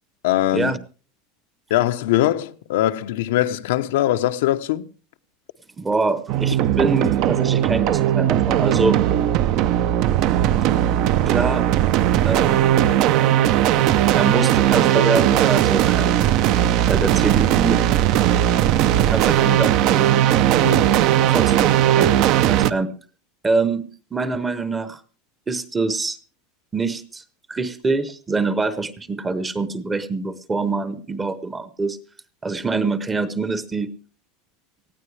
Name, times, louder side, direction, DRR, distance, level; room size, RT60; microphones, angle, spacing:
voice 1, 0.2-0.7 1.7-4.9 20.6-20.9, left 13 dB, 75° left, 0.9 m, -21 dB
voice 2, 5.8-9.0 11.3-11.7 12.2-12.8 14.1-16.4 16.8-17.8 19.1-20.3 21.3-22.9 23.4-25.0 25.5-26.2 26.7-27.2 27.5-32.0 32.4-33.9, right 3 dB, 10° right, 0.9 m, -25 dB
sound 1, 6.3-22.7, right 11 dB, 40° right, 0.6 m, -18 dB
19.0 x 14.5 x 3.3 m
supercardioid pair, 170°, 0 cm